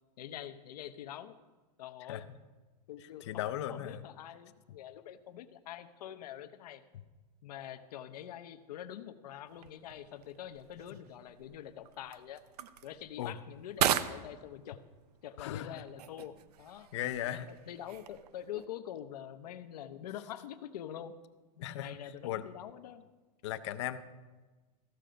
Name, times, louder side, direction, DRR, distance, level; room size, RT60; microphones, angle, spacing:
voice 1, 0.2-1.3 1.8-2.2 2.9-3.4 3.7-6.8 7.4-12.4 12.8-14.8 15.2-16.9 17.2-21.1 21.8-23.0, left 10 dB, 80° left, 10 dB, 0.8 m, -45 dB
voice 2, 3.0-4.0 13.2-13.3 15.4-15.9 16.9-17.5 21.6-22.0 22.2-22.4 23.4-24.0, left 12 dB, 45° left, 12 dB, 0.6 m, -37 dB
sound 1, 9.5-18.7, right 10 dB, 80° right, 0.6 m, -39 dB
14.5 x 6.7 x 5.1 m, 1.3 s
supercardioid pair, 175°, 20 cm